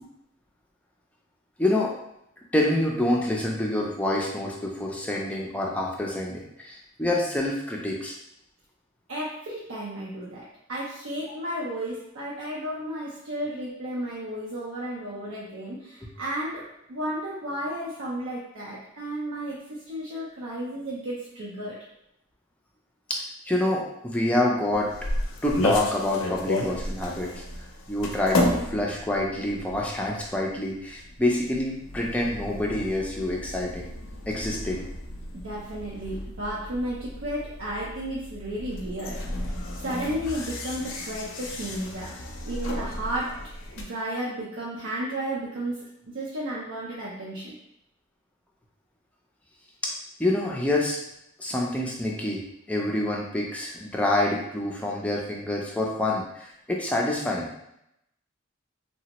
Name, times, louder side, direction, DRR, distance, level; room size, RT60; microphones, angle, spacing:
voice 1, 1.6-1.9 2.5-8.1 23.1-24.9 25.4-27.4 27.9-33.9 34.3-34.8 49.8-49.9 50.2-51.0 51.4-52.4 52.7-57.5, left 1 dB, 5° left, -2 dB, 0.4 m, -27 dB
voice 2, 9.1-21.8 35.4-42.1 42.5-43.3 43.8-47.6, right 1 dB, 65° right, -6 dB, 0.5 m, -33 dB
sound 1, 24.7-43.8, left 1 dB, 75° left, 0.5 m, -33 dB
3.2 x 2.0 x 2.8 m, 0.80 s
head